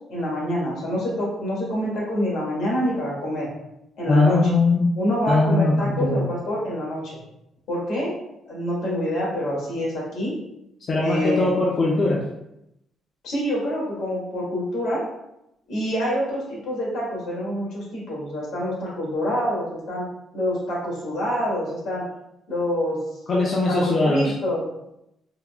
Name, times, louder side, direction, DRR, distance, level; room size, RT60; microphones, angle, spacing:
voice 1, 0.1-3.5 4.0-4.4 5.0-7.1 7.7-8.1 8.5-10.3 11.0-11.5 13.2-15.0 15.7-20.0 20.3-22.1 22.5-23.0 23.7-24.6, equal, 80° left, -5 dB, 1.4 m, -26 dB
voice 2, 4.1-4.9 5.3-6.3 10.9-12.2 23.3-24.3, left 2 dB, 45° left, -3 dB, 0.5 m, -20 dB
3.6 x 2.0 x 2.3 m, 0.83 s
cardioid pair, 90°, 0 cm